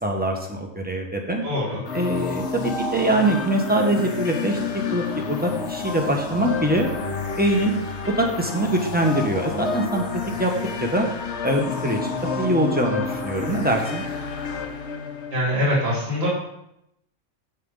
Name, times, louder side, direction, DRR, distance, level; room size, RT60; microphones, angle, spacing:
voice 1, 0.0-1.4 1.9-4.6 4.9-6.9 7.4-7.8 8.2-10.5 10.8-11.1 11.4-14.0, right 1 dB, 5° right, 1 dB, 1.2 m, -23 dB
voice 2, 1.4-1.8 15.3-16.3, left 1 dB, 45° right, -7 dB, 3.0 m, -23 dB
sound 1, 1.9-15.4, left 4 dB, 60° left, 1.2 m, -30 dB
14.0 x 5.0 x 4.0 m, 0.80 s
omnidirectional pair, 1.4 m